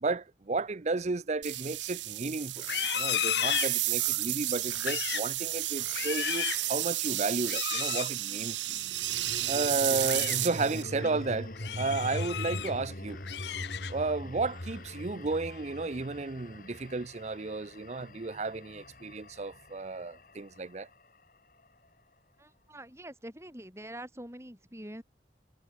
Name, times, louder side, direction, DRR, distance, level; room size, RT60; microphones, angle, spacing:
voice 1, 0.0-2.6 2.9-8.8 9.5-11.5 11.8-13.2 13.9-20.9, right 3 dB, 40° right, 0.6 m, -33 dB
sound 1, 1.4-10.8, right 16 dB, 85° right, 0.8 m, -32 dB
Livestock farm animals working animals, 2.6-4.2 4.7-5.3 5.8-6.7 7.4-8.1 9.8-10.4 10.8-11.1 11.5-12.7 13.1-14.1 14.5-14.9 15.3-15.7, left 11 dB, 70° left, 0.6 m, -34 dB
sound 2, 4.6-7.1 8.7-21.0, left 1 dB, 50° left, 4.4 m, -42 dB
voice 2, 22.4-25.0, right 1 dB, 15° right, 6.1 m, -45 dB
head